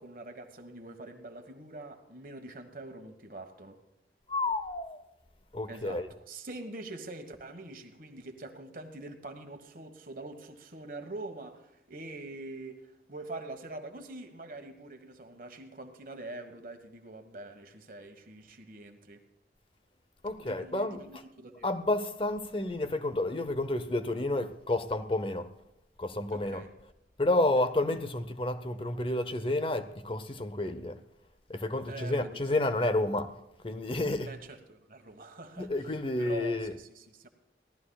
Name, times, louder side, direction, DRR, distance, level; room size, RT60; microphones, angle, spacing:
voice 1, 0.0-3.8 5.7-11.6 11.9-19.2 20.4-21.7 26.3-26.7 27.6-27.7 31.9-32.4 34.3-35.7 36.2-37.3, right 2 dB, 50° right, 1.5 m, -44 dB
voice 2, 4.3-5.0 5.5-6.1 20.2-21.0 21.6-25.5 26.0-26.6 27.2-31.0 31.5-33.3 33.6-34.3 35.6-36.7, left 2 dB, 30° left, 0.8 m, -30 dB
23.0 x 16.5 x 2.4 m
head